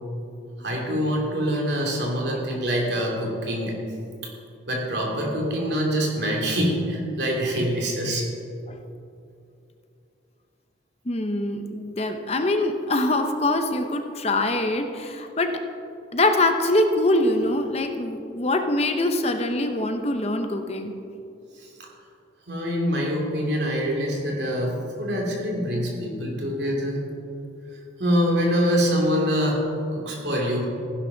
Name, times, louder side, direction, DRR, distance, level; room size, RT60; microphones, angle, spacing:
voice 1, 0.6-3.8 4.7-8.3 22.5-27.0 28.0-29.6 29.9-30.6, equal, 60° right, -1 dB, 2.7 m, -25 dB
voice 2, 11.1-15.6 16.1-20.9, left 2 dB, 35° left, 6 dB, 0.8 m, -24 dB
15.5 x 11.0 x 4.0 m, 2.6 s
head